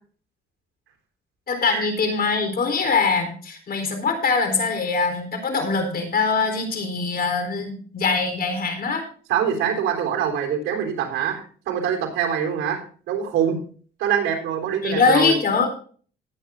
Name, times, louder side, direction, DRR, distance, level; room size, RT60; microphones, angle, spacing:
voice 1, 1.5-9.0 14.8-15.7, left 4 dB, 50° left, 5 dB, 4.0 m, -22 dB
voice 2, 9.3-13.6 14.0-15.3, right 8 dB, 85° right, 1 dB, 3.8 m, -24 dB
19.0 x 8.9 x 2.7 m, 0.43 s
cardioid pair, 90°, 20 cm